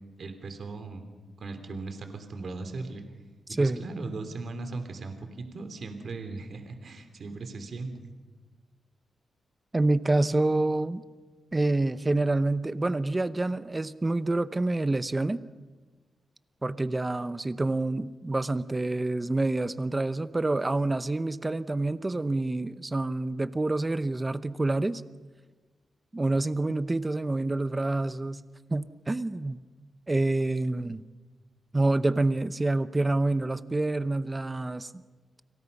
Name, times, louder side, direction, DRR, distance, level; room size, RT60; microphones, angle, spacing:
voice 1, 0.2-1.0 1.4-3.0 3.5-8.1, right 3 dB, 50° right, 7 dB, 3.0 m, -38 dB
voice 2, 9.7-11.0 11.5-15.4 16.6-25.0 26.1-28.4 28.7-29.6 30.1-31.0 31.7-35.0, right 2 dB, 20° right, 13 dB, 0.8 m, -27 dB
30.0 x 26.0 x 5.5 m, 1.3 s
wide cardioid pair, 140°, 0 cm